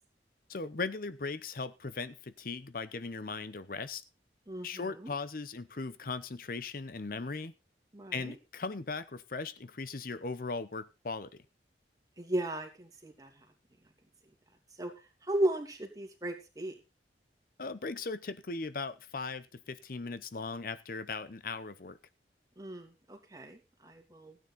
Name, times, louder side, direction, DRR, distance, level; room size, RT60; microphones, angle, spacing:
voice 1, 0.5-4.0 4.6-7.5 8.1-11.4 17.6-22.0, left 4 dB, 50° left, 14 dB, 0.7 m, -38 dB
voice 2, 4.5-5.1 7.9-8.3 12.2-13.5 14.8-14.9 15.2-16.8 22.6-24.4, right 1 dB, 20° right, 4 dB, 2.6 m, -36 dB
16.0 x 9.3 x 4.1 m, 0.28 s
head